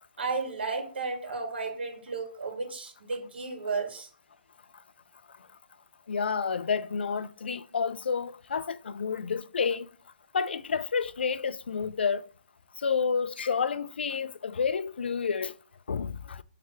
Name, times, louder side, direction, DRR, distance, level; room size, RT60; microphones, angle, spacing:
voice 1, 0.2-4.1, right 4 dB, 85° right, 2.3 m, -33 dB
voice 2, 6.1-9.9 10.3-12.3 12.8-15.5 15.9-16.4, left 6 dB, 90° left, 0.5 m, -30 dB
6.6 x 3.4 x 5.9 m
hypercardioid pair, 180°, 6 cm